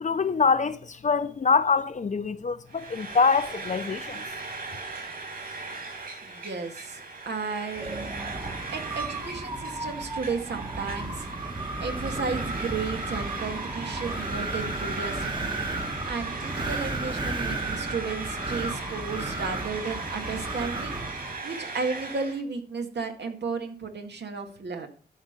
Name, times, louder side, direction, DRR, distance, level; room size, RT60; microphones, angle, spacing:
voice 1, 0.0-4.2, left 5 dB, 45° left, 0.6 m, -24 dB
Frying (food), 2.7-22.4, right 3 dB, 55° right, 5.8 m, -38 dB
voice 2, 6.2-8.4 8.7-11.3 11.5-24.9, right 4 dB, 85° right, 2.0 m, -34 dB
Wind, 7.7-21.4, right 2 dB, 25° right, 1.2 m, -34 dB
12.5 x 5.6 x 6.7 m
wide cardioid pair, 130°, 17 cm